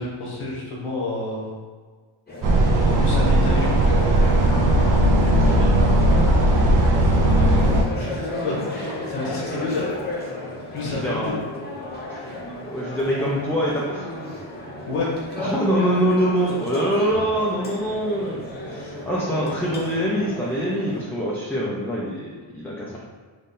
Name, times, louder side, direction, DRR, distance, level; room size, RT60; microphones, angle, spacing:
voice 1, 0.0-1.5 2.8-3.8 5.4-5.6 7.9-9.9 10.7-11.4 14.9-15.1, left 3 dB, 85° left, -5 dB, 1.5 m, -29 dB
sound 1, 2.3-21.0, left 1 dB, 20° left, 0.8 m, -33 dB
sound 2, 2.4-7.8, right 1 dB, 40° right, 0.6 m, -17 dB
voice 2, 10.8-11.4 12.1-12.3 12.6-14.1 15.4-23.0, equal, 5° left, -6 dB, 0.4 m, -24 dB
4.1 x 3.2 x 3.6 m, 1.5 s
wide cardioid pair, 160°, 49 cm